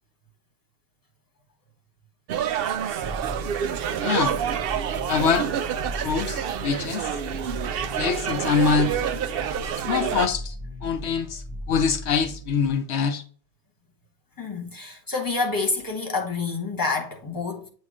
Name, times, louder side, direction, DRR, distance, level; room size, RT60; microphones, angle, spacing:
sound 1, 2.3-10.3, right 9 dB, 65° right, 0.7 m, -28 dB
sound 2, 3.0-12.7, equal, 25° right, 1.5 m, -37 dB
voice 1, 4.0-4.4 5.1-5.5 6.0-7.2 7.9-9.0 9.7-13.2, left 6 dB, 75° left, 0.9 m, -25 dB
voice 2, 14.4-17.7, left 3 dB, 20° left, 1.4 m, -28 dB
8.3 x 3.1 x 4.8 m
omnidirectional pair, 1.1 m